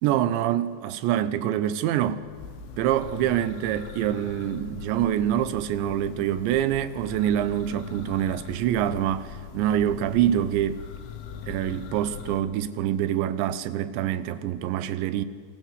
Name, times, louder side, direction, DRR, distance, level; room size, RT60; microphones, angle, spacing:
voice 1, 0.0-2.3 2.8-10.8 11.5-15.3, right 11 dB, 75° right, 3.0 m, -25 dB
Church bell, 2.1-12.4, left 7 dB, 85° left, 4.2 m, -41 dB
29.5 x 23.5 x 8.2 m
omnidirectional pair, 5.6 m